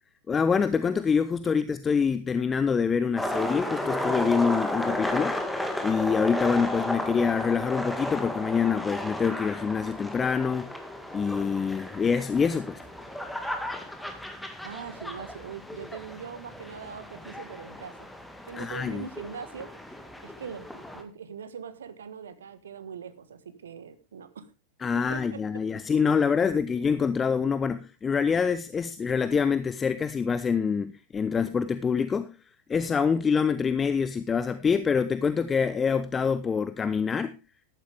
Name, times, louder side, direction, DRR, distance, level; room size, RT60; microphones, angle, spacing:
voice 1, 0.3-10.9 11.1-12.8 18.6-19.0 24.8-32.4 32.7-37.4, left 6 dB, 20° left, 0.6 m, -26 dB
sound 1, 3.2-21.0, left 1 dB, 5° left, 2.0 m, -34 dB
voice 2, 14.6-17.9 18.5-19.7 20.2-24.5 24.9-25.6, right 6 dB, 65° right, 1.4 m, -41 dB
13.5 x 11.5 x 3.4 m
figure-of-eight pair, 90°, 0 cm